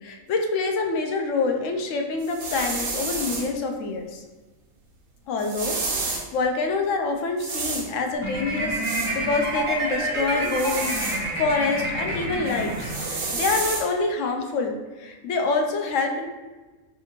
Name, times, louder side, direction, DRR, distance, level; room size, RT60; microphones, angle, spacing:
voice 1, 0.0-4.2 5.3-16.3, left 3 dB, 70° left, 4 dB, 0.9 m, -26 dB
sound 1, 2.2-3.5 5.4-6.3 7.4-7.9 8.8-9.1 10.4-11.2 12.5-13.8, right 3 dB, 90° right, 1.4 m, -30 dB
sound 2, 8.2-13.4, right 1 dB, 30° right, 0.6 m, -28 dB
5.0 x 2.5 x 2.9 m, 1.2 s
omnidirectional pair, 1.5 m